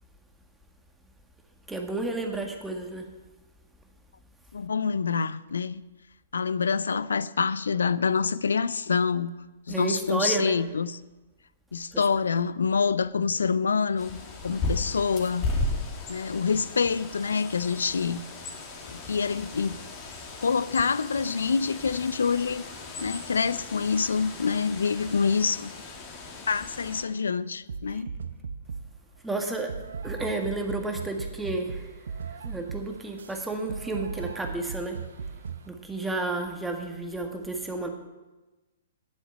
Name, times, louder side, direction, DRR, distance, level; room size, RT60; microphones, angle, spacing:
voice 1, 1.7-3.1 9.7-10.5 29.2-29.7 30.0-31.9 32.4-35.0 35.7-37.9, right 2 dB, 5° right, 3 dB, 1.7 m, -31 dB
voice 2, 4.5-5.8 6.3-9.3 9.7-11.0 11.7-15.4 16.1-18.2 18.8-19.7 20.4-22.6 23.0-25.7 26.5-28.1, left 5 dB, 75° left, 17 dB, 0.5 m, -26 dB
Bird, 14.0-27.0, left 2 dB, 30° left, 2.4 m, -36 dB
sound 1, 27.7-29.0 29.7-35.7, right 5 dB, 70° right, 0.7 m, -38 dB
9.6 x 8.0 x 8.6 m, 1.2 s
figure-of-eight pair, 120°, 0 cm